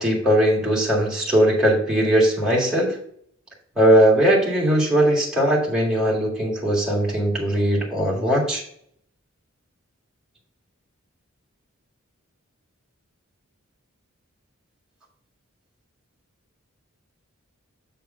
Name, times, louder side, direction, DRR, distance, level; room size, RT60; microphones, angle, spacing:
voice 1, 0.0-3.0 3.8-8.6, right 1 dB, 5° right, -4 dB, 1.8 m, -19 dB
7.1 x 3.4 x 5.4 m, 0.66 s
head